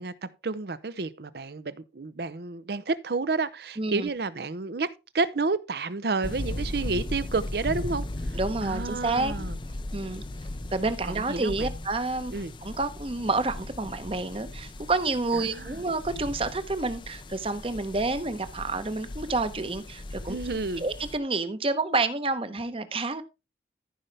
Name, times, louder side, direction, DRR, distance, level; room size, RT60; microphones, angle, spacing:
voice 1, 0.0-9.6 11.0-11.7 12.3-12.5 15.3-15.8 20.3-20.8, right 3 dB, 60° right, 0.6 m, -30 dB
voice 2, 3.8-4.1 8.3-9.3 9.9-10.2 10.7-12.3 12.6-20.4 20.8-23.2, right 3 dB, 30° right, 0.8 m, -29 dB
sound 1, 6.2-21.2, left 1 dB, 25° left, 0.5 m, -37 dB
14.0 x 5.6 x 3.4 m
head